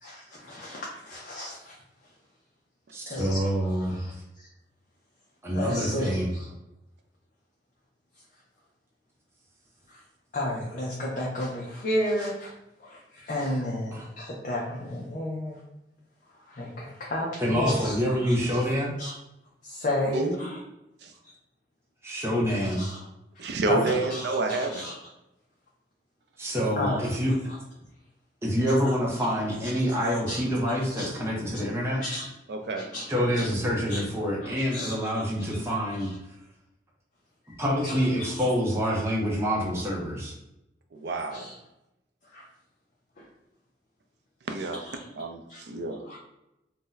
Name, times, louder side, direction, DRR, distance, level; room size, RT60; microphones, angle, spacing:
voice 1, 0.0-1.7 3.1-4.5 5.5-6.5 10.3-12.5 12.8-15.6 16.5-17.9 18.2-18.6 19.0-19.1 19.6-20.6 22.8-23.0 23.7-24.9 26.8-27.1 28.9-29.0 29.6-29.7 30.0-30.4 30.7-31.1 32.0-32.2 32.8-33.1 33.4-33.5 33.9-34.0 34.4-35.3 36.0-36.1 37.8-37.9 38.2-38.3 41.3-41.5 42.3-42.4 44.8-45.0 45.5-45.6 46.1-46.2, left 1 dB, 45° left, -4 dB, 0.5 m, -32 dB
voice 2, 2.9-4.0 5.4-6.3 13.9-14.1 17.4-18.9 22.0-22.9 26.4-27.3 28.4-32.0 33.1-36.1 37.6-40.3, equal, 15° right, -3 dB, 0.6 m, -26 dB
voice 3, 23.4-24.9 32.5-32.8 40.9-41.5 44.5-44.8 45.1-46.2, right 3 dB, 65° right, 5 dB, 0.4 m, -29 dB
2.6 x 2.1 x 3.8 m, 0.90 s
head